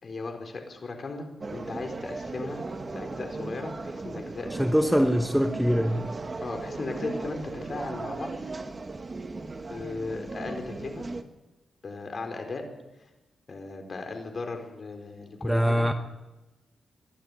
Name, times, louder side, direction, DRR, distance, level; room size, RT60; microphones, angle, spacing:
voice 1, 0.0-2.6 2.9-4.7 6.4-8.3 9.7-11.1 11.8-12.6 13.0-13.1 13.5-15.9, left 3 dB, 45° left, 4.3 m, -37 dB
sound 1, 1.4-11.2, right 3 dB, 30° right, 1.5 m, -37 dB
voice 2, 4.6-6.1 15.4-15.9, equal, ahead, 1.1 m, -23 dB
23.0 x 12.5 x 9.4 m
cardioid pair, 95°, 0 cm